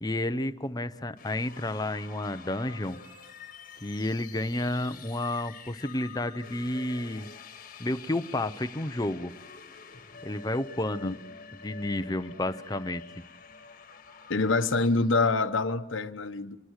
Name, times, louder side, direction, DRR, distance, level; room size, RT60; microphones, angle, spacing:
voice 1, 0.0-3.0 3.8-7.3 7.8-9.3 10.2-11.1 11.6-13.2, left 1 dB, 20° left, 0.8 m, -31 dB
sound 1, 1.1-15.3, left 6 dB, 40° left, 1.6 m, -48 dB
voice 2, 14.3-16.6, left 3 dB, 70° left, 1.1 m, -26 dB
27.5 x 21.5 x 6.5 m
head